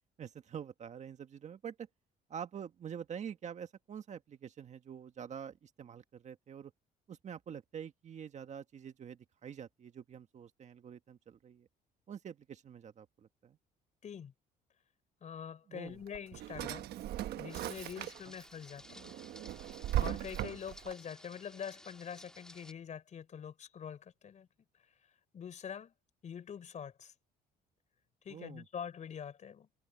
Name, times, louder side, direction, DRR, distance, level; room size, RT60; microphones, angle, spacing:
voice 1, 0.2-1.9 2.3-6.7 7.1-11.7 12.1-13.6 15.7-16.0 18.2-18.3 28.3-28.6, right 8 dB, 45° right, 1.6 m, -46 dB
voice 2, 14.0-14.3 15.2-16.9 17.4-19.1 20.0-24.5 25.3-25.9 26.2-27.1 28.2-29.7, left 8 dB, 45° left, 4.1 m, -45 dB
Drawer open or close, 15.9-18.4 18.9-20.9, right 13 dB, 70° right, 1.2 m, -38 dB
sound 1, 17.5-22.7, left 1 dB, 5° left, 2.9 m, -56 dB
cardioid pair, 110°, 17 cm